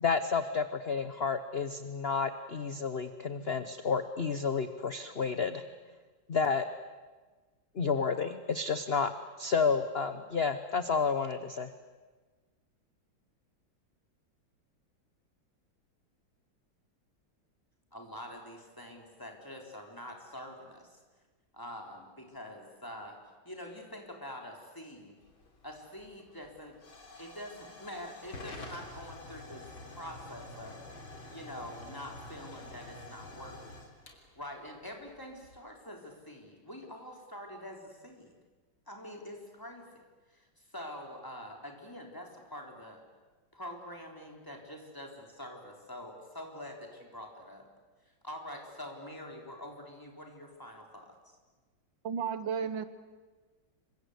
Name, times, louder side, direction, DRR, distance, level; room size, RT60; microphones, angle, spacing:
voice 1, 0.0-5.6 6.3-6.6 7.8-9.1 9.4-11.7, left 5 dB, 40° left, 10 dB, 0.9 m, -30 dB
voice 2, 17.9-21.0 21.5-23.2 23.4-25.2 25.6-26.8 27.1-30.8 31.3-33.6 34.3-38.3 38.9-43.0 43.5-47.7 48.0-51.4, left 1 dB, 10° left, 1 dB, 4.0 m, -45 dB
Hiss / Fire / Tick, 25.2-35.6, left 2 dB, 90° left, 4.2 m, -49 dB
voice 3, 52.0-52.9, right 7 dB, 75° right, 12 dB, 1.9 m, -33 dB
28.0 x 24.5 x 8.3 m, 1.3 s
omnidirectional pair, 2.1 m